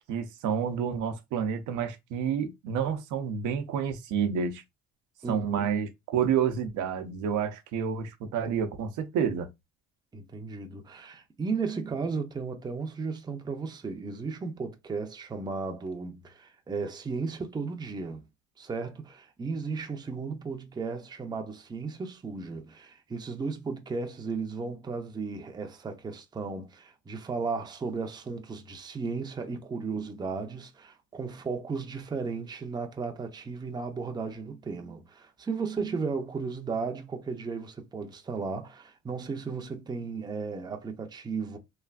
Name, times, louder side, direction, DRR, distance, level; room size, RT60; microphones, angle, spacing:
voice 1, 0.1-4.6 5.3-9.5, right 7 dB, 80° right, 0.7 m, -29 dB
voice 2, 5.2-5.7 10.1-18.2 18.6-41.6, right 4 dB, 15° right, 0.5 m, -35 dB
3.2 x 2.4 x 2.3 m
cardioid pair, 125°, 30 cm